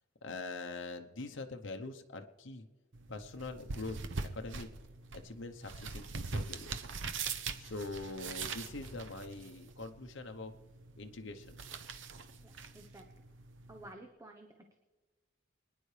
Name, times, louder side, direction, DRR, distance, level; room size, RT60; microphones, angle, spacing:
voice 1, 0.2-2.7 3.1-4.0 4.3-4.7 5.1-6.7 7.6-10.5 11.0-11.6, left 3 dB, 75° left, 5 dB, 0.9 m, -43 dB
sound 1, 2.9-13.9, right 4 dB, 70° right, 0.8 m, -43 dB
voice 2, 12.4-13.0 13.7-14.5, right 1 dB, 15° right, 3 dB, 0.9 m, -52 dB
25.5 x 10.0 x 3.3 m, 1.2 s
head